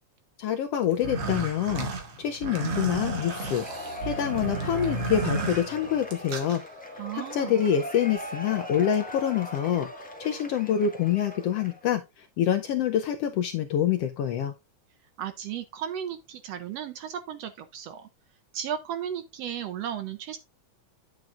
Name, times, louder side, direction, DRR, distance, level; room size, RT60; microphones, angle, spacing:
voice 1, 0.4-1.9 2.2-3.7 4.0-6.6 7.1-14.5, left 9 dB, 80° left, 1.4 m, -26 dB
sound 1, 0.9-6.6, right 3 dB, 55° right, 2.5 m, -32 dB
Cheering / Applause / Crowd, 3.0-11.9, left 1 dB, 5° left, 0.7 m, -40 dB
voice 2, 7.0-7.6 15.2-18.1 18.5-20.4, right 9 dB, 75° right, 1.6 m, -35 dB
9.2 x 7.5 x 2.5 m
omnidirectional pair, 3.4 m